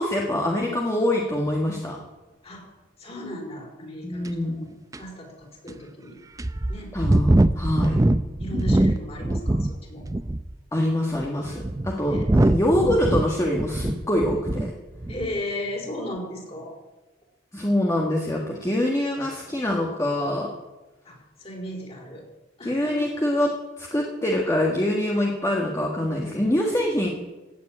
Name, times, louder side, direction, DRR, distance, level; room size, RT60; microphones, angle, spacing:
voice 1, 0.0-2.0 4.0-4.7 6.9-8.0 10.7-14.7 17.5-20.5 22.6-23.5 23.8-27.1, left 1 dB, 15° left, -1 dB, 1.7 m, -24 dB
voice 2, 3.0-4.7 5.0-6.2 6.7-6.9 8.4-10.1 12.1-12.3 15.1-16.8 21.0-22.2 22.6-23.1, left 1 dB, 30° left, 0 dB, 4.6 m, -35 dB
sound 1, 4.2-4.3 4.9-5.0 5.7-5.8 6.4-9.7 10.0-10.5 11.2-14.7 15.0-15.3, right 1 dB, 15° right, 0.5 m, -22 dB
16.5 x 7.5 x 8.7 m, 1.1 s
head